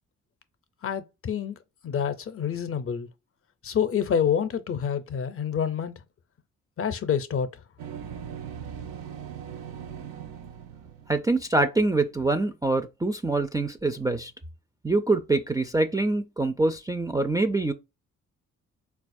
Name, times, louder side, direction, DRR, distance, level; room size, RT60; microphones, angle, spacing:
voice 1, 0.8-1.5 1.8-3.1 3.6-5.9 6.8-7.5, left 8 dB, 45° left, 0.5 m, -27 dB
sound 1, 7.8-11.7, right 8 dB, 80° right, 0.5 m, -40 dB
voice 2, 11.1-14.3 14.8-17.7, right 2 dB, 10° right, 0.4 m, -25 dB
4.1 x 2.3 x 2.5 m
supercardioid pair, 55°, 32 cm